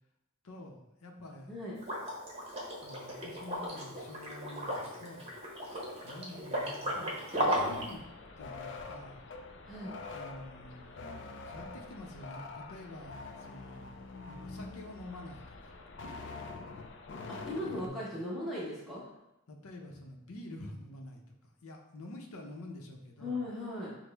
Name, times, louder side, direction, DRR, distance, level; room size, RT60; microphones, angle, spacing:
voice 1, 0.4-1.5 2.8-5.3 6.0-8.0 8.4-9.2 10.1-14.0 14.3-15.8 17.7-18.1 19.5-23.4, left 1 dB, 85° left, 1 dB, 0.7 m, -48 dB
Liquid, 1.8-7.9, equal, 30° right, 0.8 m, -35 dB
sound 1, 7.6-17.9, left 3 dB, 55° left, 0.4 m, -45 dB
voice 2, 17.3-19.1 23.2-23.9, left 1 dB, ahead, -9 dB, 0.9 m, -38 dB
6.0 x 2.1 x 3.4 m, 0.89 s
head